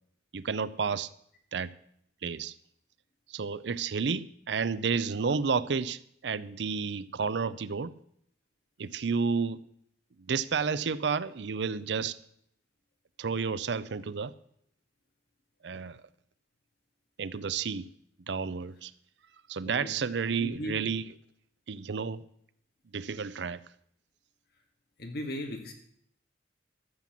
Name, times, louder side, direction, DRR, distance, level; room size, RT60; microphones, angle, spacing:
voice 1, 0.3-1.1 1.5-1.7 2.2-2.5 3.3-7.9 8.8-9.6 10.3-12.2 13.2-14.3 15.6-16.0 17.2-17.8 18.3-18.9 19.5-21.0 21.7-22.2 22.9-23.6, right 5 dB, 70° right, 17 dB, 0.5 m, -31 dB
voice 2, 19.6-20.0 20.4-20.8 25.0-25.7, left 1 dB, 55° left, 3 dB, 2.0 m, -37 dB
13.0 x 7.6 x 7.4 m, 0.69 s
head